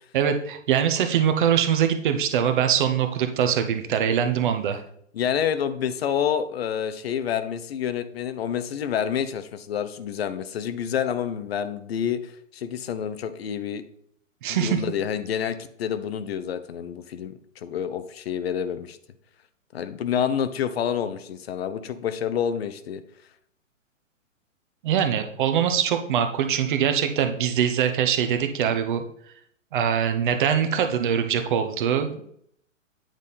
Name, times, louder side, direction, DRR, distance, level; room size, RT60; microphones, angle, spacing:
voice 1, 0.1-4.8 14.4-14.8 24.8-29.0 29.7-32.2, right 8 dB, 40° right, 7 dB, 0.8 m, -23 dB
voice 2, 5.1-13.8 14.5-19.0 19.7-23.0, left 8 dB, 50° left, 11 dB, 0.7 m, -28 dB
8.9 x 3.5 x 4.1 m, 0.68 s
hypercardioid pair, 130°, 39 cm